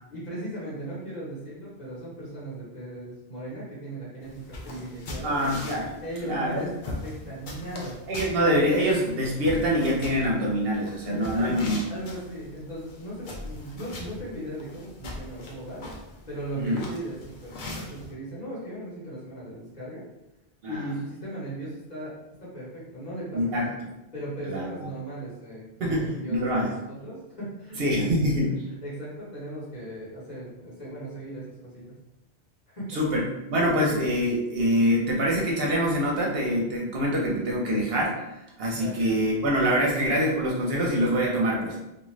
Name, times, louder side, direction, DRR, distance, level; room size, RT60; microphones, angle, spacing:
voice 1, 0.1-5.3 6.0-8.0 11.1-11.6 11.9-15.8 16.3-20.1 20.7-23.7 24.1-28.1 28.8-31.8 32.7-33.0 38.6-39.0, right 1 dB, 40° left, -7 dB, 1.1 m, -37 dB
sound 1, 4.2-18.1, left 2 dB, 55° left, 0.6 m, -41 dB
voice 2, 5.2-5.9 6.2-6.6 8.1-11.8 16.6-16.8 20.6-20.8 23.3-23.7 24.5-24.6 25.8-26.7 27.8-28.5 32.9-33.2 33.5-38.2 38.6-41.8, equal, 65° right, -3 dB, 0.8 m, -25 dB
2.4 x 2.4 x 3.1 m, 0.93 s
omnidirectional pair, 1.1 m